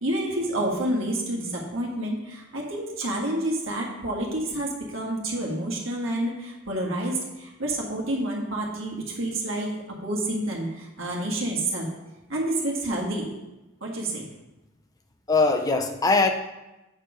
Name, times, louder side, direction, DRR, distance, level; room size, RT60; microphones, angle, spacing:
voice 1, 0.0-11.9 12.3-13.3 13.8-14.2, right 1 dB, 75° right, -2 dB, 1.7 m, -29 dB
voice 2, 15.3-16.3, left 3 dB, 15° left, 6 dB, 0.5 m, -22 dB
8.0 x 4.6 x 4.8 m, 1.0 s
head